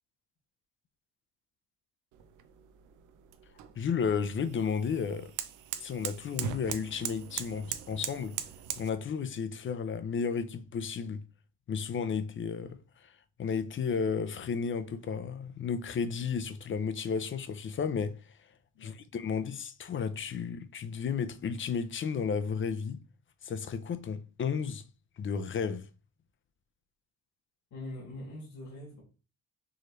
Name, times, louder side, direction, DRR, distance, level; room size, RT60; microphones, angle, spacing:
sound 1, 2.1-8.9, right 10 dB, 85° right, 0.5 m, -40 dB
voice 1, 3.8-5.3 5.8-8.4 8.8-11.3 11.7-18.4 18.8-23.0 23.4-24.8 25.2-25.9, left 6 dB, 40° left, 0.6 m, -33 dB
voice 2, 27.7-29.0, left 1 dB, 65° left, 2.2 m, -43 dB
4.7 x 3.2 x 3.1 m
cardioid pair, 90°, 30 cm